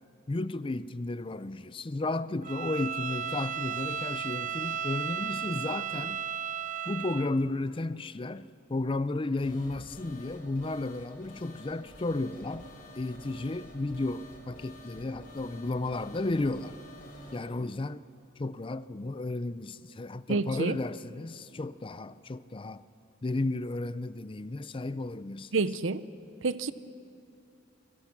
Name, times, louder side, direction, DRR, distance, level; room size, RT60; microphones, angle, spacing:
voice 1, 0.3-6.2 6.9-12.7 13.0-16.8 17.3-18.0 18.4-22.8 23.2-25.5, left 2 dB, 25° left, 0.5 m, -33 dB
Bowed string instrument, 2.4-7.3, right 8 dB, 40° right, 0.5 m, -34 dB
sound 1, 9.4-17.4, left 1 dB, 45° left, 4.9 m, -49 dB
voice 2, 20.3-20.8 25.5-26.1 26.4-26.7, right 3 dB, 80° right, 0.7 m, -28 dB
28.5 x 23.0 x 6.0 m
head